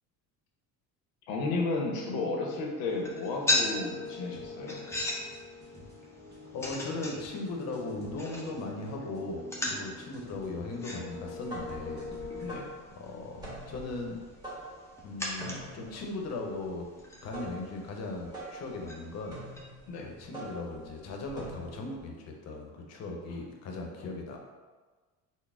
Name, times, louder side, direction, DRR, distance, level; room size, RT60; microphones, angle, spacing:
voice 1, 1.3-4.8 12.4-12.7 19.9-20.1 24.0-24.3, left 3 dB, 90° left, 0 dB, 0.8 m, -33 dB
sound 1, 2.9-19.6, left 1 dB, 10° left, 0.4 m, -39 dB
sound 2, 3.5-12.5, left 4 dB, 25° right, 1.5 m, -44 dB
voice 2, 6.5-12.1 13.0-14.2 15.0-16.9 17.2-19.4 20.0-24.4, left 2 dB, 45° left, 1 dB, 0.7 m, -38 dB
sound 3, 11.2-22.0, right 1 dB, 10° right, 1.1 m, -45 dB
4.0 x 2.0 x 3.5 m, 1.4 s
cardioid pair, 125°, 35 cm